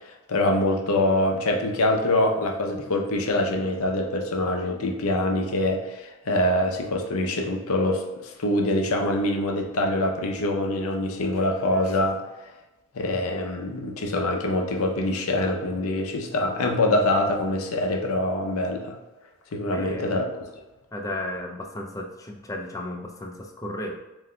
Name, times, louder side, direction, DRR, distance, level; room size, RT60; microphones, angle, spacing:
voice 1, 0.1-12.2 12.9-18.9 19.5-20.3, left 1 dB, 70° left, 3 dB, 0.6 m, -24 dB
voice 2, 19.7-20.2 20.9-24.0, left 1 dB, 15° left, 2 dB, 0.4 m, -34 dB
7.4 x 2.6 x 2.2 m, 1.0 s
head